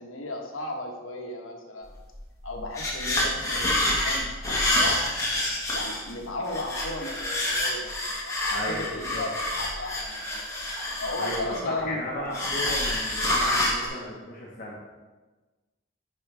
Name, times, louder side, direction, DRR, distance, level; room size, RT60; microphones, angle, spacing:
voice 1, 0.0-1.9 2.4-5.1 5.7-10.5 11.0-12.0, left 2 dB, 90° left, 1 dB, 1.3 m, -35 dB
sound 1, 2.1-2.2 2.5-6.1 6.5-11.8 12.3-13.9, left 1 dB, 15° left, 1.6 m, -27 dB
voice 2, 8.5-8.9 9.1-9.3 11.2-14.8, left 1 dB, 45° left, -5 dB, 1.3 m, -34 dB
9.5 x 5.6 x 3.4 m, 1.2 s
head